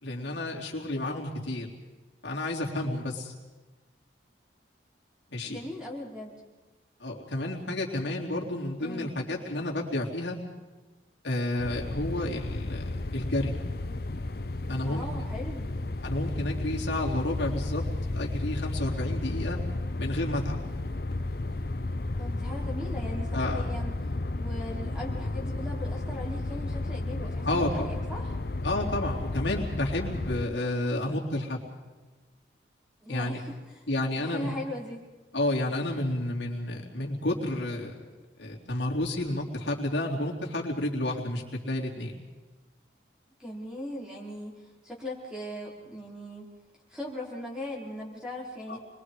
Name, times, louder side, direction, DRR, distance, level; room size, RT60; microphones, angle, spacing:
voice 1, 0.0-1.7 2.2-3.3 5.3-5.6 7.0-10.4 11.2-12.8 13.1-13.5 14.7-15.0 16.0-17.8 18.1-19.6 20.0-20.6 23.3-23.7 27.2-27.9 28.6-31.6 33.1-33.4 33.9-34.5 35.3-38.0 38.4-42.1 48.7-48.8, left 1 dB, 70° left, -2 dB, 3.6 m, -31 dB
voice 2, 5.5-6.4 8.8-9.1 14.8-15.7 22.2-24.0 24.3-28.4 33.0-33.9 34.2-35.1 43.4-46.5 46.9-48.8, left 1 dB, 5° right, -4 dB, 4.9 m, -39 dB
sound 1, 11.6-30.5, left 2 dB, 55° left, 0.7 m, -33 dB
29.5 x 22.0 x 5.0 m, 1.2 s
head